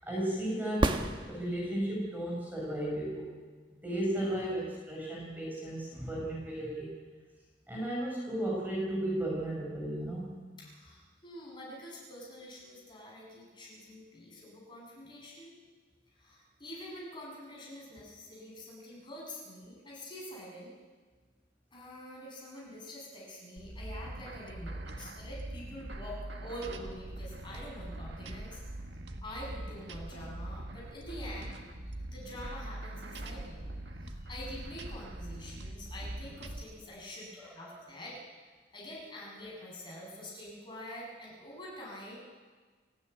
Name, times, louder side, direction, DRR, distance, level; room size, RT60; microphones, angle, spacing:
voice 1, 0.0-3.3 3.8-6.9 7.7-10.3 37.4-37.8, right 1 dB, 10° right, -3 dB, 5.4 m, -34 dB
sound 1, 0.7-1.9 5.8-5.9, right 1 dB, 25° right, 1.2 m, -31 dB
voice 2, 10.6-15.5 16.1-20.7 21.7-28.6 29.2-31.6 32.1-33.7 34.0-38.2 38.7-42.2, equal, 25° left, -4 dB, 7.3 m, -46 dB
sound 2, 23.6-36.6, right 1 dB, 70° right, 1.8 m, -42 dB
30.0 x 10.5 x 9.3 m, 1.4 s
head